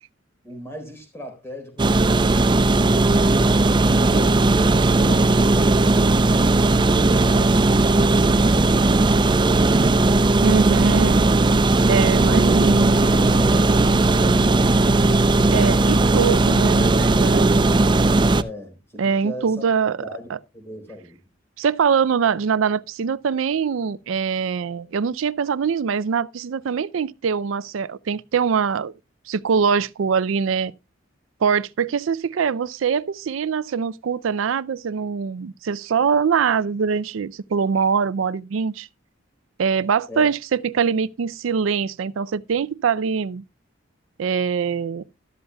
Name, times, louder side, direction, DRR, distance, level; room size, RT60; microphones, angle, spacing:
voice 1, 0.4-2.9 17.1-19.6 20.0-20.3 20.5-21.2 40.1-40.3, equal, 15° left, 3.9 m, -38 dB
sound 1, 1.8-18.4, right 2 dB, 25° right, 0.5 m, -17 dB
voice 2, 10.4-11.2 11.9-12.9 15.5-17.5 19.0-20.4 21.6-28.9 29.3-30.7 31.4-38.9 39.6-43.4 44.2-45.0, right 6 dB, 90° right, 0.4 m, -23 dB
13.5 x 12.0 x 2.2 m
head